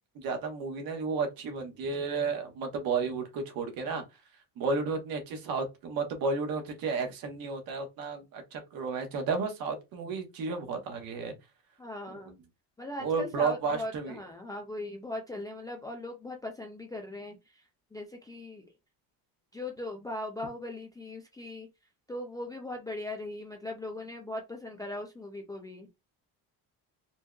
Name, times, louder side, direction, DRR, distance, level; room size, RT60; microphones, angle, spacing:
voice 1, 0.1-4.0 4.6-11.3 12.2-12.3 13.0-14.2, right 4 dB, 60° right, 1.2 m, -32 dB
voice 2, 11.8-12.3 12.8-17.6 17.9-18.7 19.5-21.7 22.1-25.9, left 1 dB, 10° left, 0.3 m, -39 dB
4.5 x 2.9 x 2.3 m
cardioid pair, 160°, 39 cm